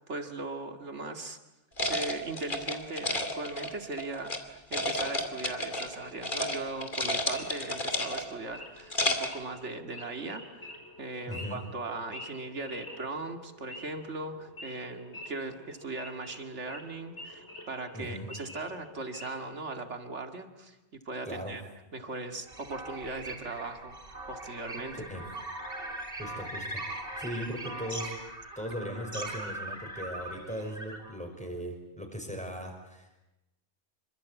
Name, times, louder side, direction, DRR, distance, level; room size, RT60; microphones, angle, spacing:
voice 1, 0.0-1.4 1.9-20.8 21.1-21.6 21.9-24.0 24.3-25.1, right 2 dB, 85° right, 6 dB, 2.5 m, -39 dB
sound 1, 1.8-4.4 4.7-6.0 6.2-6.6 6.8-8.4 8.8-9.4, left 1 dB, 45° left, 2.8 m, -31 dB
Wild animals / Idling, 4.8-19.5, left 1 dB, 75° left, 5.2 m, -48 dB
voice 2, 11.3-11.6 17.9-18.3 21.2-21.6 25.1-25.2 26.2-28.2 28.6-33.2, equal, 5° left, 3 dB, 5.9 m, -38 dB
sound 2, 22.5-31.1, right 1 dB, 55° right, 4.8 m, -40 dB
27.0 x 24.5 x 8.4 m, 0.96 s
omnidirectional pair, 1.2 m